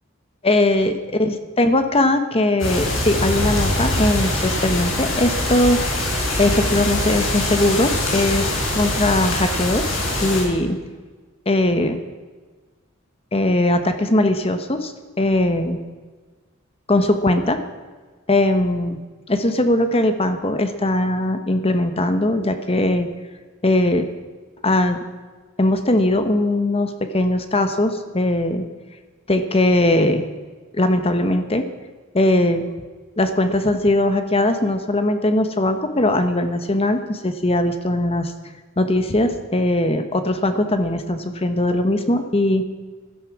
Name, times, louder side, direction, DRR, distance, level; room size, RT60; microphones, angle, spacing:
voice 1, 0.4-5.8 6.4-10.8 11.5-12.0 13.3-14.9 15.2-15.8 16.9-17.6 18.3-19.0 19.3-23.1 23.6-24.1 24.6-25.0 25.6-28.7 29.3-30.3 30.7-31.6 32.1-32.7 33.2-38.3 38.8-42.7, left 1 dB, 30° left, 8 dB, 1.1 m, -20 dB
sound 1, 2.6-10.4, left 1 dB, 70° left, 6.2 m, -23 dB
16.0 x 13.0 x 6.0 m, 1.4 s
head